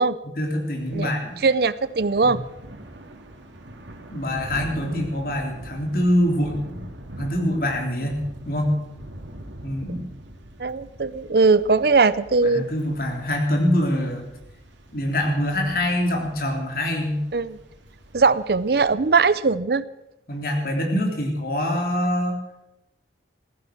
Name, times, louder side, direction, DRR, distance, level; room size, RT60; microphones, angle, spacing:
voice 1, 0.2-1.4 2.2-2.4 4.1-6.8 7.2-8.2 8.4-8.8 9.6-10.0 12.4-14.3 14.9-17.3 20.3-22.4, left 1 dB, 50° left, 2 dB, 3.5 m, -24 dB
Thunder / Rain, 0.8-19.2, right 1 dB, 90° right, 2.4 m, -43 dB
voice 2, 1.4-2.4 10.6-12.6 17.3-17.6 18.1-19.8, right 4 dB, 55° right, 17 dB, 0.6 m, -20 dB
16.0 x 15.0 x 6.1 m, 0.89 s
head